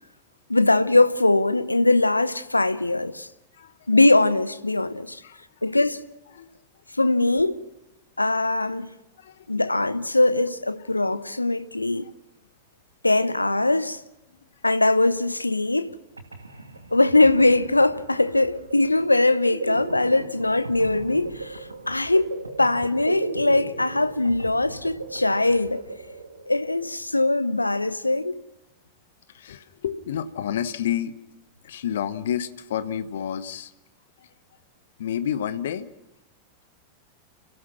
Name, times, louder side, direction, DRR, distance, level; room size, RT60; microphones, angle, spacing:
voice 1, 0.5-3.3 3.9-5.2 5.6-6.0 7.0-7.6 8.2-9.0 9.5-12.1 13.0-14.0 14.6-16.0 16.9-25.8 26.5-28.4, left 2 dB, 85° left, 0.8 m, -21 dB
voice 2, 3.5-3.9 5.2-5.4 6.3-6.5 9.2-9.7 12.0-12.1 14.3-14.4 29.3-31.1 31.6-33.7 34.2-34.3 35.0-35.9, left 9 dB, 60° left, 1.1 m, -30 dB
sound 1, 15.9-16.0 16.2-26.8, right 2 dB, 80° right, 2.3 m, -37 dB
30.0 x 15.5 x 6.0 m
figure-of-eight pair, 90°, 0 cm